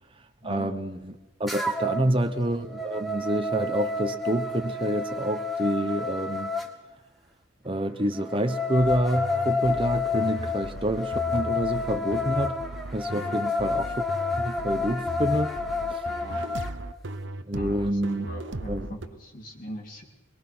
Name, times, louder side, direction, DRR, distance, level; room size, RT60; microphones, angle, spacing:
voice 1, 0.4-1.1 1.4-6.5 7.6-12.6 12.9-14.0 14.4-15.5 15.9-16.0 17.5-18.3 18.7-18.9, right 1 dB, 25° right, 1.1 m, -27 dB
sound 1, 1.5-2.1 2.5-6.7 8.2-16.7, left 4 dB, ahead, 1.9 m, -29 dB
sound 2, 8.7-19.1, right 2 dB, 70° right, 1.0 m, -37 dB
voice 2, 16.0-16.6 17.5-20.0, equal, 45° left, 3.4 m, -42 dB
23.0 x 22.5 x 6.2 m
head